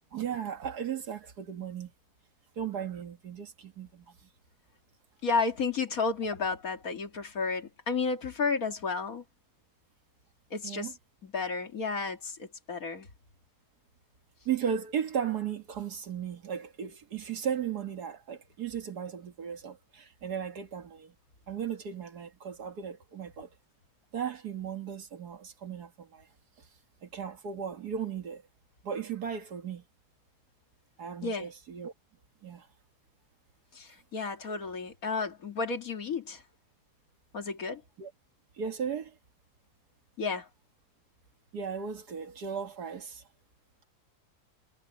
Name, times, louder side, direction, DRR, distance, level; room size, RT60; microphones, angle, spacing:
voice 1, 0.0-1.9 2.6-4.1 10.6-10.9 14.5-21.1 21.5-23.5 24.1-26.3 27.0-28.4 28.8-29.8 31.0-31.9 32.4-32.7 38.0-38.1 38.6-39.2 41.5-43.2, right 8 dB, 80° right, 2.2 m, -36 dB
voice 2, 5.2-9.2 10.5-10.9 11.2-13.1 31.2-31.5 33.7-36.4 37.3-37.8 40.2-40.5, left 4 dB, 60° left, 2.4 m, -32 dB
omnidirectional pair, 1.7 m